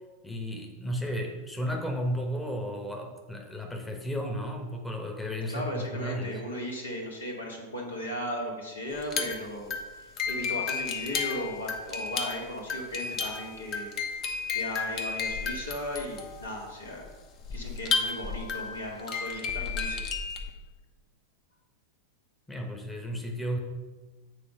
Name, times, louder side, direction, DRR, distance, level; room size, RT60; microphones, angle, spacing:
voice 1, 0.2-6.4 22.5-23.6, equal, 5° left, 1 dB, 1.0 m, -33 dB
voice 2, 5.5-13.9 14.5-17.1 17.5-20.0, equal, 75° left, -1 dB, 1.8 m, -36 dB
sound 1, 9.0-20.5, left 5 dB, 35° left, 1.0 m, -33 dB
8.3 x 4.2 x 5.5 m, 1.3 s
figure-of-eight pair, 90°, 0 cm